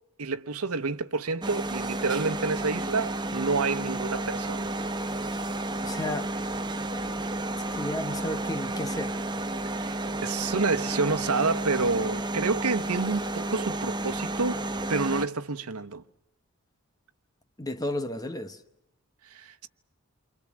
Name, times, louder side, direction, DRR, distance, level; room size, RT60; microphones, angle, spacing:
voice 1, 0.2-4.7 9.7-10.0 10.2-14.6 14.9-16.0 19.3-19.7, right 4 dB, 90° right, 1.1 m, -28 dB
sound 1, 1.4-15.3, right 2 dB, 20° right, 1.0 m, -31 dB
voice 2, 5.8-6.3 7.6-9.2 17.6-18.6, left 1 dB, 15° left, 1.0 m, -33 dB
29.0 x 23.5 x 7.4 m
head